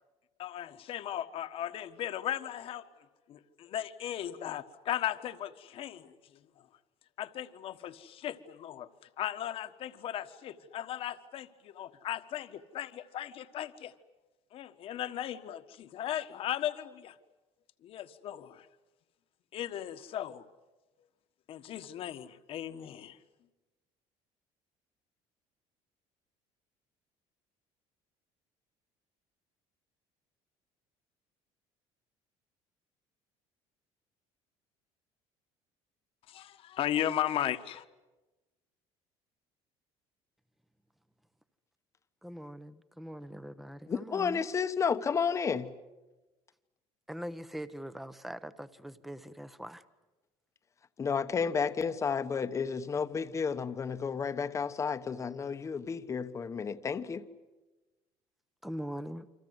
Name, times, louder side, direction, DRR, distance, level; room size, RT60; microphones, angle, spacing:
voice 1, 0.4-2.8 3.3-6.1 7.2-8.9 9.2-13.9 14.5-17.1 17.8-18.7 19.5-20.4 21.5-23.2 36.3-37.8, left 11 dB, 50° left, 9 dB, 1.4 m, -36 dB
voice 2, 42.2-44.4 47.1-49.8 58.6-59.2, equal, ahead, 13 dB, 0.9 m, -42 dB
voice 3, 43.9-45.7 51.0-57.2, left 6 dB, 25° left, 10 dB, 1.1 m, -32 dB
28.5 x 25.5 x 8.0 m, 1.1 s
cardioid pair, 135°, 12 cm